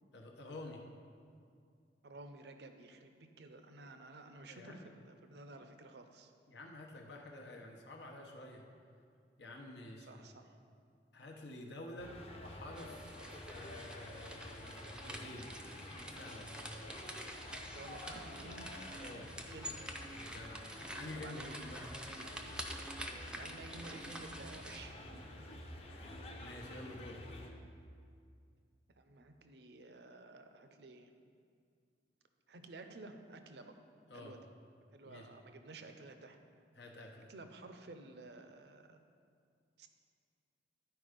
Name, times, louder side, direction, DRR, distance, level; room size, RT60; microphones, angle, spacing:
voice 1, 0.1-0.8 4.4-4.9 6.5-8.6 9.4-10.1 11.1-13.1 13.4-14.8 15.0-15.5 16.1-16.6 19.0-19.3 20.3-20.6 20.9-21.9 25.5-25.6 25.9-27.2 34.1-34.3 35.0-35.3 36.7-37.3, left 1 dB, 80° left, 1 dB, 0.9 m, -49 dB
voice 2, 2.0-6.3 10.0-10.6 17.7-18.8 19.4-19.8 21.1-21.6 23.3-25.2 29.0-31.1 32.5-33.8 34.1-34.5 34.9-36.4 37.3-39.0 39.8-39.9, right 3 dB, 70° right, 7 dB, 0.6 m, -53 dB
sound 1, 12.0-27.5, left 1 dB, 35° left, 0.8 m, -49 dB
sound 2, 12.8-24.8, equal, 5° right, 0.4 m, -48 dB
11.0 x 4.6 x 5.1 m, 2.3 s
head